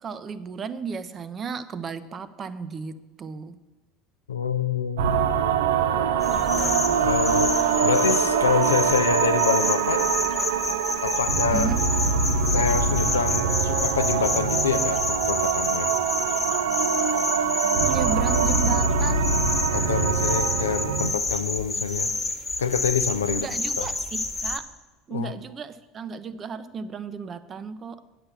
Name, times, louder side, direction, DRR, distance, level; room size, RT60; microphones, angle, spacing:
voice 1, 0.0-3.6 11.5-11.8 17.9-19.4 23.3-24.7 25.1-28.0, right 5 dB, 35° right, 13 dB, 0.6 m, -34 dB
voice 2, 4.3-5.2 7.0-10.1 11.0-11.7 12.5-15.9 19.7-22.1 22.6-23.5 23.8-23.9 25.1-25.3, left 7 dB, 90° left, 10 dB, 0.4 m, -26 dB
sound 1, 5.0-21.1, right 6 dB, 80° right, 0.4 m, -24 dB
sound 2, 6.2-24.6, left 3 dB, 20° left, 1.2 m, -29 dB
8.7 x 5.9 x 6.9 m, 1.2 s
hypercardioid pair, 75°, 0 cm